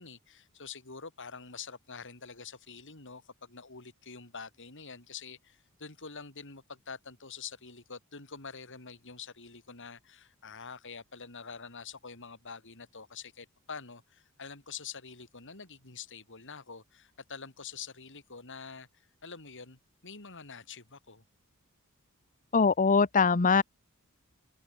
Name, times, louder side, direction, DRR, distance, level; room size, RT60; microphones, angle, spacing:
voice 1, 0.0-18.9 19.2-21.2, left 5 dB, 60° left, 5.1 m, -46 dB
voice 2, 22.5-23.6, left 5 dB, 35° left, 0.8 m, -22 dB
head